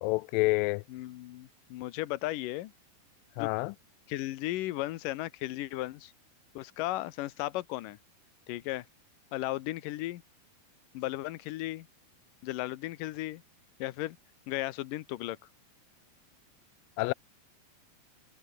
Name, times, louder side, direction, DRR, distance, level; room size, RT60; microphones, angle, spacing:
voice 1, 0.0-0.8 3.4-3.7 17.0-17.1, left 24 dB, 90° left, 2.0 m, -28 dB
voice 2, 0.9-2.7 3.4-3.5 4.1-6.1 6.6-8.0 8.5-8.8 9.3-10.2 10.9-11.9 12.4-13.4 13.8-14.2 14.5-15.4, left 16 dB, 70° left, 2.3 m, -35 dB
omnidirectional pair, 4.5 m